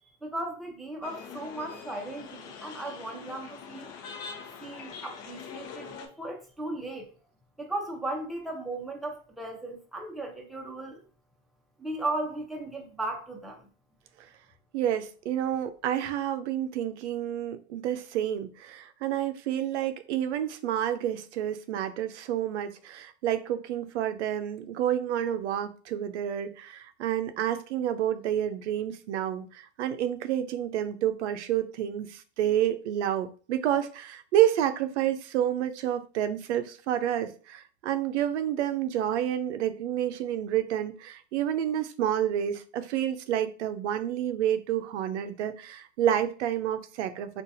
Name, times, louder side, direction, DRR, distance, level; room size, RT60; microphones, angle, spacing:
voice 1, 0.2-3.9 4.6-7.1 7.6-11.0 11.8-13.7, right 2 dB, ahead, 0.6 m, -36 dB
sound 1, 1.0-6.1, left 6 dB, 45° left, 0.8 m, -43 dB
voice 2, 14.7-47.4, right 11 dB, 85° right, 0.5 m, -29 dB
3.8 x 2.4 x 2.6 m
supercardioid pair, 120°, 34 cm